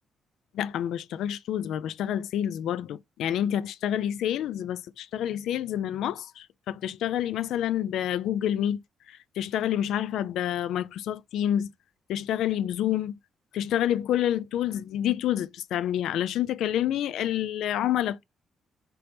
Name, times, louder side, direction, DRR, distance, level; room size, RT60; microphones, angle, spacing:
voice 1, 0.5-11.7 12.1-13.2 13.5-18.2, left 11 dB, 80° left, 0.3 m, -28 dB
4.4 x 3.3 x 2.6 m
cardioid pair, 90°, 0 cm